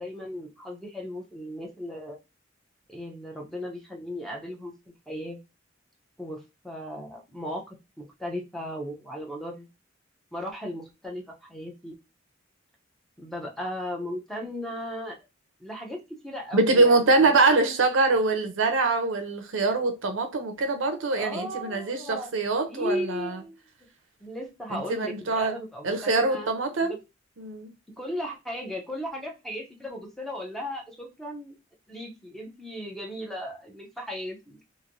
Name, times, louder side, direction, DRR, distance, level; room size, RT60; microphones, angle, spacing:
voice 1, 0.0-2.2 2.9-5.4 6.2-9.7 10.3-12.0 13.2-15.2 15.6-17.9 21.2-22.3 22.7-23.6 24.2-26.5 26.8-27.0 28.0-31.5 31.9-34.6, equal, ahead, 0.7 m, -36 dB
voice 2, 16.5-23.4 24.7-25.6 25.8-27.0 27.4-27.7, right 3 dB, 80° right, 0.6 m, -24 dB
3.1 x 2.6 x 2.6 m
head